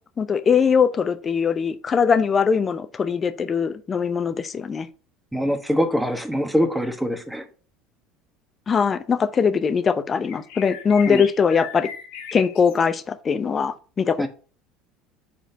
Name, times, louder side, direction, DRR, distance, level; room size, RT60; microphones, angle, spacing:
voice 1, 0.2-4.9 8.7-11.9 12.3-14.3, left 6 dB, 30° left, 0.7 m, -21 dB
voice 2, 5.3-7.4 11.1-11.2 14.2-14.3, equal, 5° right, 1.3 m, -23 dB
sound 1, 10.2-12.8, left 8 dB, 70° left, 1.2 m, -37 dB
5.0 x 4.3 x 5.6 m
hypercardioid pair, 75°, 0 cm